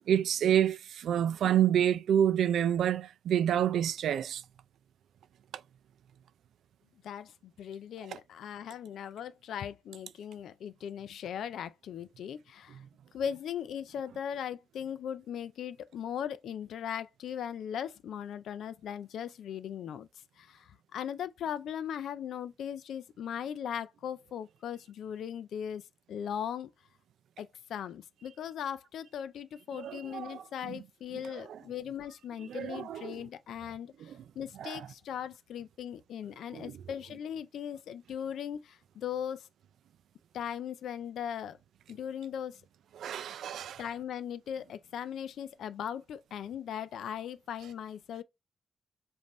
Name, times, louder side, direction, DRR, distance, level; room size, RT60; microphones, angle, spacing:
voice 1, 0.1-4.4 12.7-12.8 29.7-30.8 31.1-31.6 32.4-33.3 34.0-34.2 34.5-34.9 36.5-36.8 42.9-43.9, right 10 dB, 85° right, 0.3 m, -29 dB
voice 2, 7.0-12.8 13.1-20.1 20.4-25.8 26.1-26.7 27.4-39.5 40.3-41.6 41.9-42.6 43.8-48.2, left 9 dB, 85° left, 0.4 m, -39 dB
5.2 x 2.6 x 3.0 m
wide cardioid pair, 175°, 0 cm